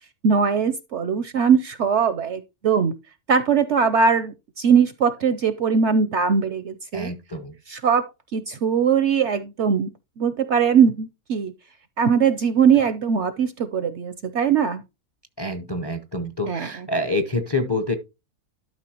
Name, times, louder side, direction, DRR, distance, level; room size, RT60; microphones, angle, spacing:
voice 1, 0.2-2.9 3.3-7.1 7.7-8.1 8.3-9.9 10.2-11.5 12.0-14.8 16.5-16.7, right 6 dB, 60° right, 0.8 m, -20 dB
voice 2, 6.9-7.6 15.4-18.0, left 2 dB, 25° left, 0.5 m, -27 dB
12.0 x 5.5 x 2.8 m
omnidirectional pair, 1.6 m